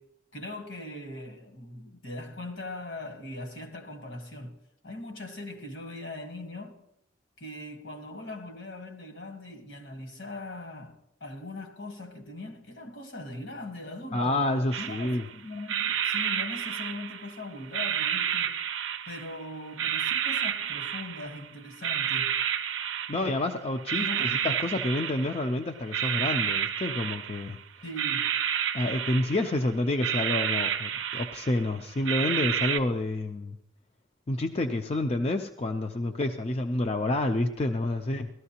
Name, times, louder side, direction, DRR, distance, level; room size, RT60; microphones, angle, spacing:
voice 1, 0.3-4.6 4.8-6.9 7.4-14.4 14.8-18.7 19.1-22.4 23.9-24.4 27.8-28.4, left 1 dB, 70° left, 1.5 m, -40 dB
voice 2, 14.1-15.3 23.1-27.6 28.7-33.6 34.3-38.3, left 2 dB, 30° left, 0.4 m, -29 dB
sound 1, 14.7-15.3 15.7-17.3 17.7-19.4 19.8-21.4 21.8-23.5 23.9-25.5 25.9-27.5 28.0-29.6 30.0-31.6 32.0-32.8, right 9 dB, 80° right, 0.5 m, -30 dB
17.5 x 13.0 x 2.8 m
head